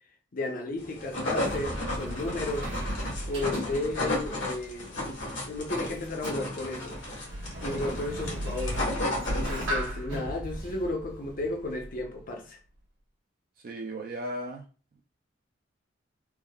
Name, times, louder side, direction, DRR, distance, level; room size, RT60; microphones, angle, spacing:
voice 1, 0.3-2.7 3.3-5.0 5.5-6.9 7.6-8.8 9.5-12.6, left 2 dB, 45° left, 0.6 m, -33 dB
sound 1, 0.8-9.9, left 1 dB, 75° left, 1.2 m, -33 dB
Sliding door, 0.8-12.2, right 1 dB, 70° right, 1.1 m, -37 dB
voice 2, 13.6-14.6, right 1 dB, 45° right, 0.4 m, -35 dB
3.5 x 2.0 x 2.3 m
head